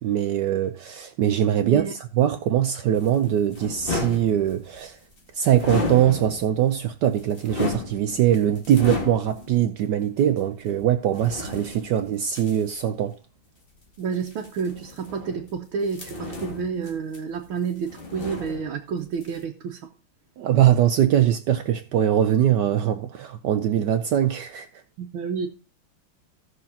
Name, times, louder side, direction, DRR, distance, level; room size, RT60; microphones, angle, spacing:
voice 1, 0.0-5.0 5.3-13.1 20.4-24.7, right 10 dB, 70° right, 1.1 m, -22 dB
voice 2, 1.6-1.9 14.0-19.9 25.0-25.5, right 6 dB, 90° right, 1.7 m, -30 dB
sound 1, 2.9-4.9 5.5-6.6 7.0-9.6 10.2-10.3 11.1-12.8 14.1-15.6 15.9-17.5 17.8-18.9 19.2-19.4, left 2 dB, 30° left, 2.0 m, -33 dB
16.5 x 6.3 x 2.8 m
omnidirectional pair, 2.2 m